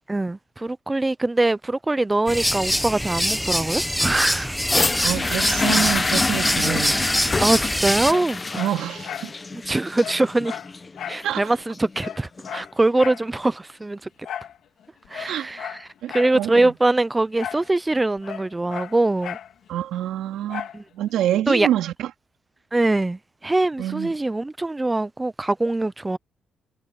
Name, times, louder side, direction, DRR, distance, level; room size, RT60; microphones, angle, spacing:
voice 1, 0.1-4.6 5.0-5.5 7.4-8.6 9.5-10.6 11.1-14.0 15.1-15.8 16.1-19.4 20.7-20.8 21.5-21.7 22.7-26.2, right 2 dB, 15° right, 0.7 m, -23 dB
sound 1, 2.3-8.1, equal, ahead, 1.3 m, -24 dB
sound 2, 4.6-12.6 13.4-13.5, left 3 dB, 25° left, 1.2 m, -27 dB
voice 2, 5.0-7.1 8.6-9.3 11.2-11.5 15.2-15.5 16.0-16.7 19.7-20.7 20.9-22.1 23.8-24.1, right 12 dB, 85° right, 3.2 m, -26 dB
Dog, 8.0-9.3 9.6-9.7 10.0-11.3 11.6-11.7 12.0-13.3 14.2-14.6 15.0-16.4 17.4-17.7 18.0-19.5 20.5-20.8 21.3-21.4, left 9 dB, 70° left, 3.6 m, -35 dB
cardioid pair, 90°, 0 cm